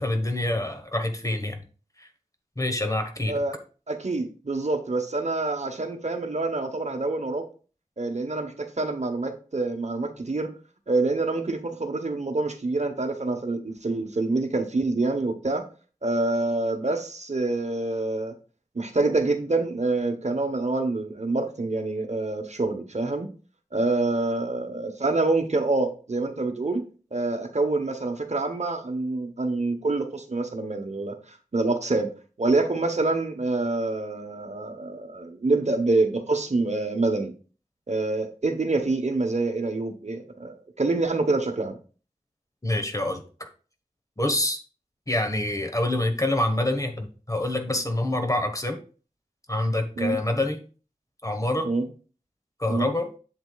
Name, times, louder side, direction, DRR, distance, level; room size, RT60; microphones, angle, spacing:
voice 1, 0.0-1.6 2.0-2.1 2.6-3.3 42.6-43.5 44.2-44.6 45.1-48.8 49.5-50.6 51.2-51.7 52.6-53.1, left 1 dB, 25° left, 6 dB, 1.2 m, -26 dB
voice 2, 3.9-7.5 8.0-10.5 10.9-15.6 16.0-18.3 18.7-23.3 23.7-26.8 27.1-32.1 32.4-37.3 37.9-41.8 50.0-50.2 51.6-51.8 52.7-52.9, right 2 dB, 55° right, 6 dB, 1.0 m, -26 dB
7.8 x 7.6 x 2.3 m, 0.38 s
wide cardioid pair, 60°, 14 cm